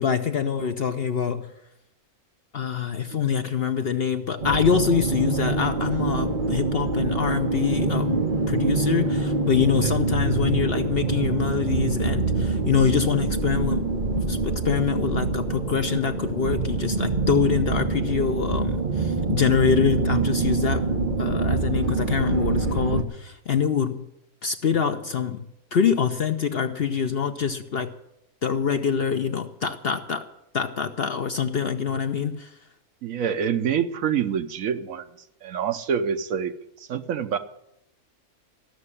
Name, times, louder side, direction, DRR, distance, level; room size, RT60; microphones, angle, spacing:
voice 1, 0.0-1.5 2.5-13.9 14.1-20.9 21.2-24.0 24.4-25.5 25.7-27.9 28.4-30.3 30.5-32.5, left 7 dB, 50° left, 7 dB, 0.8 m, -25 dB
sound 1, 4.4-23.0, right 3 dB, 35° right, 1.2 m, -25 dB
voice 2, 33.0-35.1 35.4-37.4, right 7 dB, 65° right, 10 dB, 1.1 m, -26 dB
14.0 x 6.6 x 9.8 m, 0.82 s
omnidirectional pair, 1.6 m